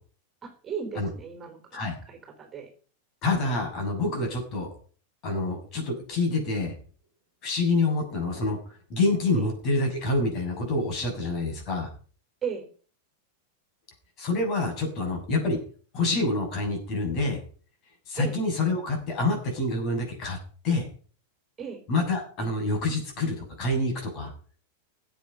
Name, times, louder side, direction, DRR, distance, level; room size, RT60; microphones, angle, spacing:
voice 1, 0.4-1.8 2.1-2.7 9.4-9.5 12.4-12.7 18.2-18.4 21.6-21.8, right 7 dB, 20° right, 3 dB, 4.1 m, -36 dB
voice 2, 3.2-4.7 5.2-6.7 7.4-11.9 14.2-15.6 15.9-17.4 18.1-20.4 20.6-20.9 21.9-24.3, left 2 dB, 35° left, 2 dB, 7.0 m, -27 dB
17.0 x 8.1 x 5.7 m, 0.41 s
figure-of-eight pair, 90°, 0 cm